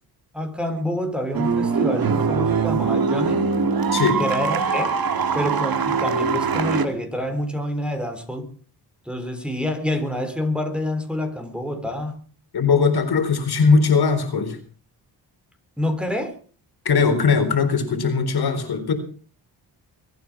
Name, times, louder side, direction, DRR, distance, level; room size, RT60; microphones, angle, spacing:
voice 1, 0.3-3.5 4.2-5.0 5.3-8.5 9.1-12.2 15.8-16.4, left 1 dB, ahead, 5 dB, 3.7 m, -27 dB
sound 1, 1.3-6.9, right 5 dB, 55° right, 2.2 m, -22 dB
voice 2, 3.9-4.2 12.5-14.6 16.8-18.9, left 5 dB, 60° left, 7 dB, 4.1 m, -19 dB
23.5 x 9.4 x 6.1 m, 0.42 s
cardioid pair, 75°, 42 cm